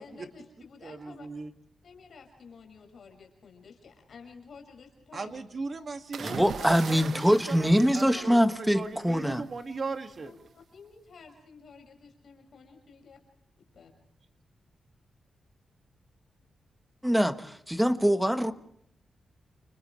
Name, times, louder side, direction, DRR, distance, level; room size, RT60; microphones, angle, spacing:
voice 1, 0.0-1.3 1.8-5.4 6.8-7.4 8.1-8.7 10.2-13.2 13.7-13.9, left 5 dB, 55° left, 6.1 m, -51 dB
voice 2, 0.8-1.5 5.1-10.3, right 4 dB, 40° right, 2.1 m, -38 dB
sound 1, 6.1-8.9 10.1-10.4, right 6 dB, 65° right, 1.1 m, -40 dB
voice 3, 6.2-9.4 17.0-18.5, equal, 5° right, 1.3 m, -24 dB
30.0 x 30.0 x 3.3 m
wide cardioid pair, 145°, 0 cm